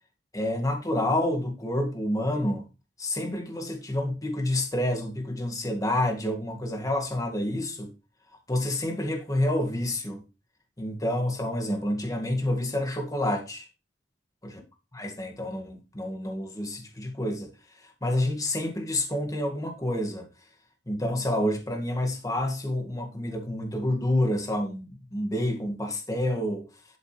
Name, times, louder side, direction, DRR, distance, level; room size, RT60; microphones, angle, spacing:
voice 1, 0.3-2.7 3.0-7.9 8.5-10.2 10.8-13.6 14.9-17.5 18.0-20.3 20.9-26.7, left 1 dB, 20° left, 2.0 m, -28 dB
12.5 x 6.7 x 3.3 m
head